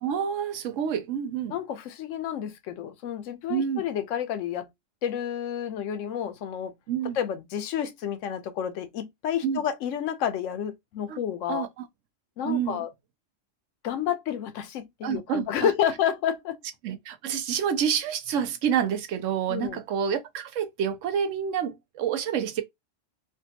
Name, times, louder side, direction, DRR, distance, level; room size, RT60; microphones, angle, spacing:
voice 1, 0.0-1.5 3.5-3.8 6.9-7.2 9.4-9.6 11.1-11.2 11.5-11.8 12.4-12.8 15.0-15.7 16.8-22.6, right 8 dB, 80° right, 1.0 m, -28 dB
voice 2, 1.5-4.7 5.0-6.7 7.1-11.7 12.4-12.9 13.8-16.6 19.5-19.8, left 9 dB, 90° left, 1.0 m, -30 dB
3.4 x 2.2 x 2.7 m
omnidirectional pair, 1.3 m